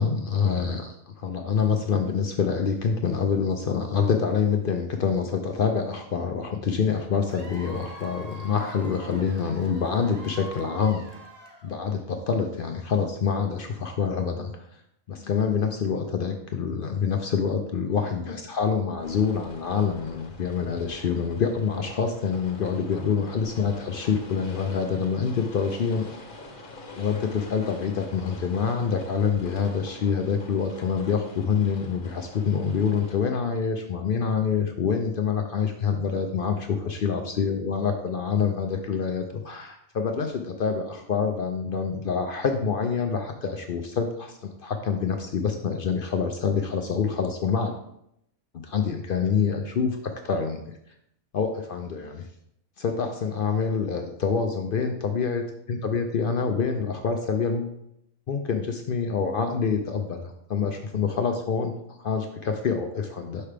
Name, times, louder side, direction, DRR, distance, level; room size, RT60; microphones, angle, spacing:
voice 1, 0.0-11.0 11.6-14.7 15.1-26.1 26.9-47.7 48.6-50.7 51.3-52.3 52.8-57.8 58.3-63.4, left 6 dB, 60° left, 5 dB, 0.5 m, -26 dB
Cheering / Applause / Crowd, 7.3-12.0, equal, 35° right, 0.8 m, -44 dB
sound 1, 19.0-33.2, left 2 dB, 75° left, 1.6 m, -45 dB
5.8 x 5.5 x 3.3 m, 0.76 s
omnidirectional pair, 1.4 m